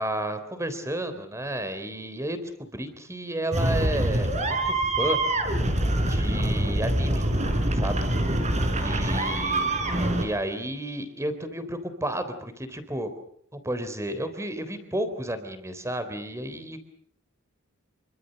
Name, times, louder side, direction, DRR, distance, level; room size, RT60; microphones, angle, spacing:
voice 1, 0.0-5.2 6.1-7.2 7.8-8.1 8.8-9.8 10.2-13.1 13.5-16.8, right 1 dB, 15° right, 10 dB, 3.7 m, -32 dB
sound 1, 3.5-10.3, right 1 dB, 35° right, 4.3 m, -25 dB
27.5 x 24.5 x 6.6 m, 0.63 s
head